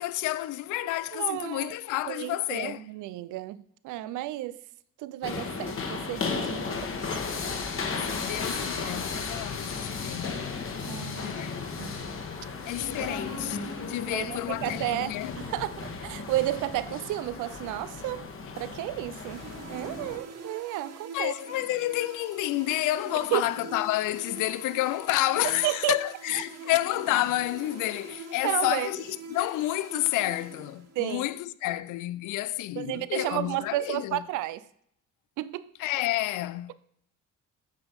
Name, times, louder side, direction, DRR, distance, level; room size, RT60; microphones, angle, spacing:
voice 1, 0.0-2.8 8.0-10.5 11.2-11.6 12.7-15.3 21.1-34.2 35.8-36.7, left 16 dB, 85° left, 0.5 m, -30 dB
voice 2, 1.1-1.7 2.1-3.6 3.8-4.6 5.0-7.1 10.9-11.3 11.8-12.0 13.0-13.2 14.1-18.3 18.6-21.3 23.3-23.5 25.6-25.9 28.4-28.9 31.0-31.3 32.8-34.6 35.4-35.7, right 15 dB, 90° right, 0.5 m, -32 dB
sound 1, 5.2-20.2, left 4 dB, 45° left, 1.5 m, -35 dB
sound 2, 19.3-31.2, right 3 dB, 55° right, 1.7 m, -44 dB
9.1 x 6.0 x 5.3 m
cardioid pair, 90°, 30 cm